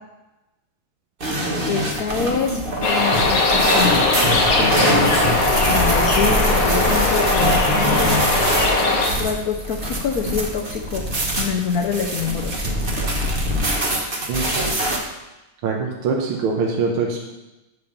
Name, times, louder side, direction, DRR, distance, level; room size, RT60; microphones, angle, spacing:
sound 1, 1.2-15.0, equal, 30° right, 1.1 m, -23 dB
voice 1, 1.7-4.1 4.5-4.9 5.7-8.3 9.2-12.6, left 6 dB, 65° left, 3 dB, 0.9 m, -26 dB
sound 2, 2.8-9.1, left 2 dB, 80° left, 2.4 m, -19 dB
voice 2, 15.6-17.2, right 4 dB, 80° right, 0 dB, 1.8 m, -23 dB
8.6 x 5.5 x 6.7 m, 1.0 s
omnidirectional pair, 2.4 m